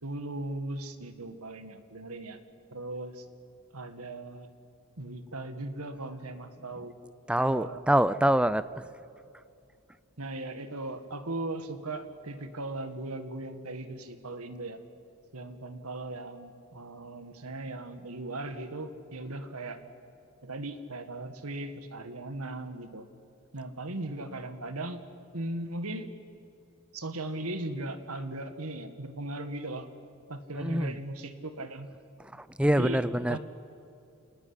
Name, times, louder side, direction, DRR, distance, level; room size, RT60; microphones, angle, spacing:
voice 1, 0.0-2.4 2.7-3.3 3.7-4.5 5.0-7.0 7.4-7.8 10.2-14.8 15.3-19.8 20.4-23.1 23.5-25.0 25.3-26.1 26.9-29.9 30.3-31.9 32.6-33.0 33.3-33.4, right 2 dB, 80° right, 9 dB, 1.9 m, -38 dB
voice 2, 7.3-8.8 30.5-30.9 32.2-33.4, right 1 dB, 5° right, 15 dB, 0.5 m, -25 dB
28.0 x 19.0 x 9.9 m, 2.6 s
head